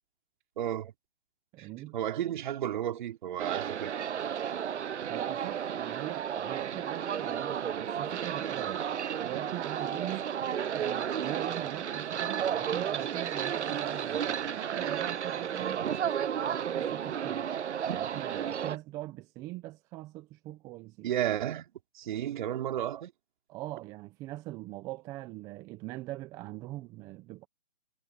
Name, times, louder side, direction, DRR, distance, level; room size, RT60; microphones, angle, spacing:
voice 1, 0.6-0.9 1.6-3.9 21.0-21.7 21.9-23.1, right 11 dB, 45° right, 3.0 m, -33 dB
voice 2, 1.5-2.0 5.1-10.3 10.7-15.8 16.4-17.5 17.9-21.1 23.5-27.5, right 17 dB, 10° right, 0.6 m, -41 dB
sound 1, 3.4-18.8, right 8 dB, 85° right, 0.6 m, -33 dB
hypercardioid pair, 145°, 33 cm